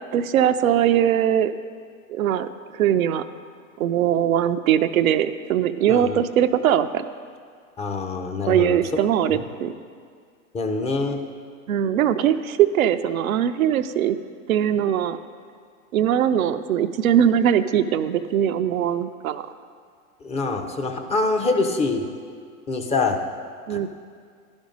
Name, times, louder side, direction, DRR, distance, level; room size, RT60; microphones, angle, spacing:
voice 1, 0.1-1.5 2.1-2.5 2.7-3.2 3.8-7.0 8.5-9.7 11.7-14.2 14.5-15.2 15.9-19.5 23.7-23.9, right 10 dB, 75° right, 10 dB, 0.5 m, -21 dB
voice 2, 7.8-8.8 9.3-9.4 10.5-11.2 20.2-22.1 22.7-23.2 23.7-23.9, left 3 dB, 15° left, 4 dB, 0.5 m, -25 dB
11.5 x 5.2 x 5.2 m, 2.1 s
hypercardioid pair, 95°, 42 cm